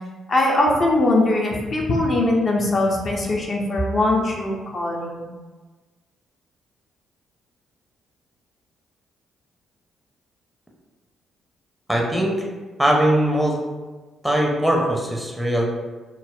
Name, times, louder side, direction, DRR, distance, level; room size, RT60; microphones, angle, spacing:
voice 1, 0.3-5.3, left 2 dB, 40° left, -1 dB, 0.6 m, -21 dB
voice 2, 11.9-12.3 12.8-13.6 14.2-15.6, right 1 dB, ahead, -1 dB, 0.6 m, -20 dB
3.8 x 2.0 x 2.3 m, 1.3 s
figure-of-eight pair, 40°, 0 cm